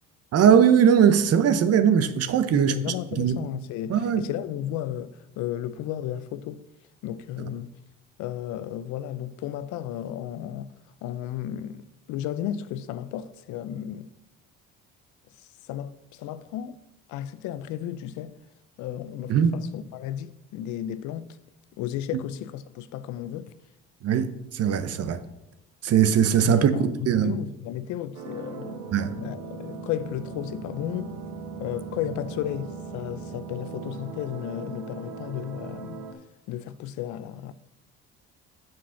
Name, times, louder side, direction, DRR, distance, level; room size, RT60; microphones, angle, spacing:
voice 1, 0.3-2.7 3.1-3.4 3.9-4.3 19.3-19.5 24.0-25.2 25.8-27.4 28.9-29.2, right 8 dB, 55° right, 0.9 m, -20 dB
voice 2, 2.5-6.6 7.0-7.7 8.2-10.7 11.0-11.8 12.1-14.1 15.4-16.8 17.1-18.3 18.8-21.4 21.8-23.5 26.4-28.8 29.2-31.1 31.6-36.1 36.5-37.5, left 11 dB, 70° left, 0.6 m, -34 dB
sound 1, 28.1-36.1, right 4 dB, 75° right, 1.6 m, -39 dB
7.5 x 6.0 x 5.7 m
supercardioid pair, 80°, 30 cm